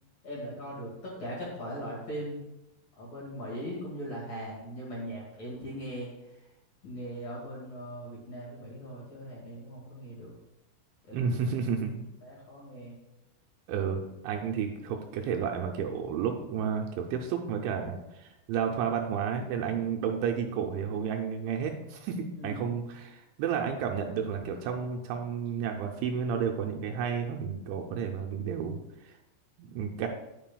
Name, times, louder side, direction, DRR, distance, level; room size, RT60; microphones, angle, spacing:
voice 1, 0.2-2.4 3.0-6.4 6.8-10.3 11.1-11.4 12.2-13.0 22.4-22.6, equal, 50° left, -6 dB, 2.4 m, -40 dB
voice 2, 11.1-12.0 13.7-28.8 29.0-29.1 29.6-30.1, right 7 dB, 80° right, 2 dB, 2.8 m, -31 dB
9.6 x 8.8 x 2.3 m, 0.91 s
omnidirectional pair, 5.6 m